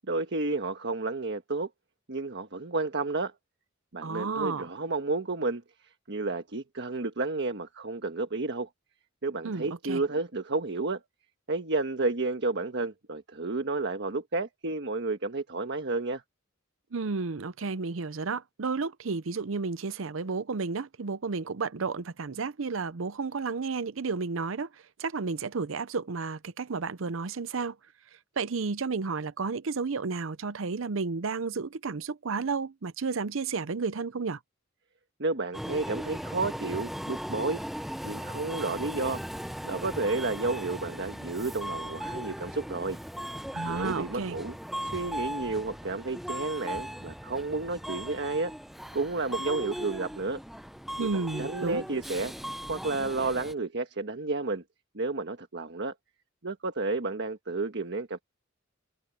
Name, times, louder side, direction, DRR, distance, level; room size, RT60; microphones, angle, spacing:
voice 1, 0.1-1.7 2.1-3.3 3.9-8.7 9.2-11.0 11.5-16.2 35.2-37.6 38.0-39.2 39.6-43.0 43.6-44.6 44.8-48.5 48.9-50.4 51.0-52.3 52.7-54.6 54.9-55.9 56.4-58.2, right 3 dB, 60° right, 1.4 m, -31 dB
voice 2, 4.0-4.7 9.4-10.0 16.9-24.7 25.0-27.8 28.4-34.4 43.5-44.4 51.0-51.8, right 4 dB, 75° right, 0.7 m, -32 dB
Subway metro underground, 35.5-53.5, equal, ahead, 0.6 m, -38 dB
head